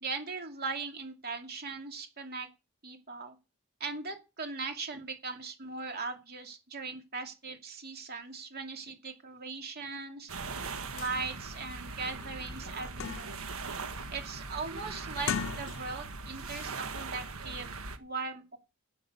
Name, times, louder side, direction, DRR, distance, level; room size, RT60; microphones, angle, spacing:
voice 1, 0.0-2.5 2.8-3.4 3.8-10.3 10.9-13.3 14.1-17.7 18.0-18.6, right 4 dB, 50° right, 4 dB, 2.4 m, -39 dB
sound 1, 10.3-18.0, right 4 dB, 80° right, 1.4 m, -40 dB
sound 2, 10.7-10.8 11.0-11.2 11.7-11.8 12.2-13.5 13.9-14.3 15.1-16.1 16.4-16.7, left 7 dB, 65° left, 0.5 m, -38 dB
11.5 x 8.8 x 5.5 m, 0.29 s
head